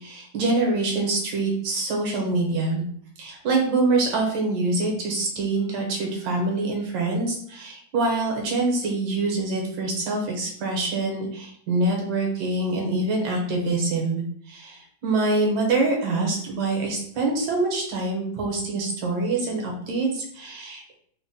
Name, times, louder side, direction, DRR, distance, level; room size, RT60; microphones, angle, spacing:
voice 1, 0.0-2.8 3.2-14.2 14.5-21.0, right 2 dB, 75° right, 0 dB, 1.5 m, -25 dB
3.7 x 2.1 x 2.7 m, 0.63 s
omnidirectional pair, 2.0 m